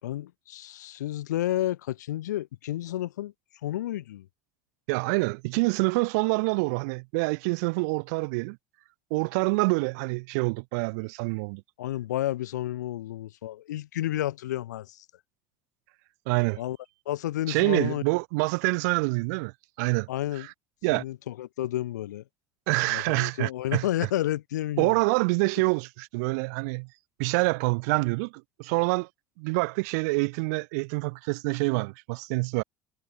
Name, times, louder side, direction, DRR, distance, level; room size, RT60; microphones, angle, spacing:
voice 1, 0.0-3.3 3.6-4.3 11.8-15.0 16.6-16.8 17.1-18.0 20.1-20.5 20.9-22.2 22.9-25.0, left 13 dB, 75° left, 4.6 m, -31 dB
voice 2, 4.9-8.6 9.1-11.6 16.3-16.6 17.5-19.5 19.8-20.1 20.4-20.5 20.8-21.0 22.7-23.9 24.8-26.9 27.2-28.3 28.6-29.1 29.4-32.6, right 30 dB, 70° right, 7.5 m, -26 dB
figure-of-eight pair, 65°, 9 cm